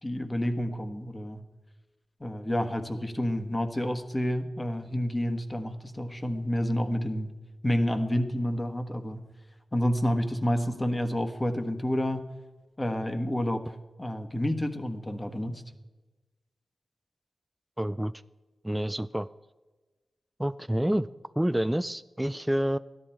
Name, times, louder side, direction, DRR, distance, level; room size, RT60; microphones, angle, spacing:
voice 1, 0.0-1.4 2.2-7.3 7.6-9.2 9.7-12.2 12.8-13.6 14.0-15.6, equal, 25° left, 7 dB, 1.3 m, -29 dB
voice 2, 17.8-18.1 18.6-19.3 20.4-21.1 21.4-22.8, right 1 dB, 10° right, 13 dB, 0.3 m, -28 dB
13.0 x 11.0 x 4.4 m, 1.2 s
cardioid pair, 50°, 0 cm